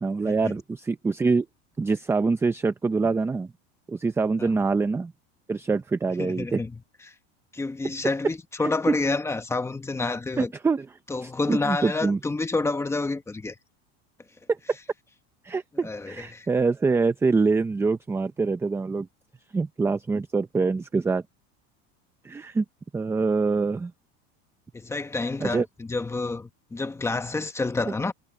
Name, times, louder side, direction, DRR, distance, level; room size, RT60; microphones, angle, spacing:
voice 1, 0.0-1.5 1.8-3.5 3.9-5.1 5.5-6.6 8.6-9.0 10.4-10.9 11.2-12.2 14.5-14.6 15.4-19.1 19.5-21.2 22.2-22.6 22.9-23.9 25.4-25.7 27.9-28.0, right 4 dB, 10° right, 0.5 m, -25 dB
voice 2, 6.2-6.7 7.1-7.2 7.5-10.5 11.1-13.5 15.8-16.5 24.7-28.1, left 3 dB, 10° left, 1.1 m, -29 dB
cardioid pair, 155°, 31 cm